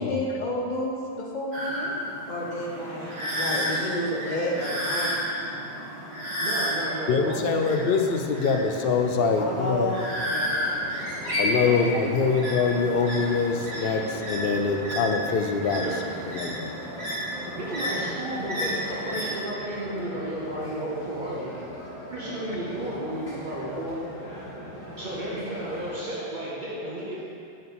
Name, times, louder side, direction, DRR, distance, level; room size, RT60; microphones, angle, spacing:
voice 1, 0.0-2.0 2.3-5.1 9.4-10.0 10.3-10.8, left 1 dB, 45° left, -2 dB, 1.0 m, -31 dB
sound 1, 1.5-19.3, equal, 80° right, 2.1 m, -32 dB
voice 2, 6.4-7.9 11.7-12.4 15.8-16.0 17.6-21.5 22.1-24.0 25.0-27.2, right 1 dB, 50° right, -7 dB, 1.0 m, -33 dB
voice 3, 7.1-9.9 11.4-15.9 16.2-16.7, left 5 dB, 70° left, 4 dB, 0.7 m, -24 dB
sound 2, 8.7-26.0, equal, 85° left, 2.1 m, -40 dB
6.5 x 4.3 x 5.3 m, 2.5 s
omnidirectional pair, 1.1 m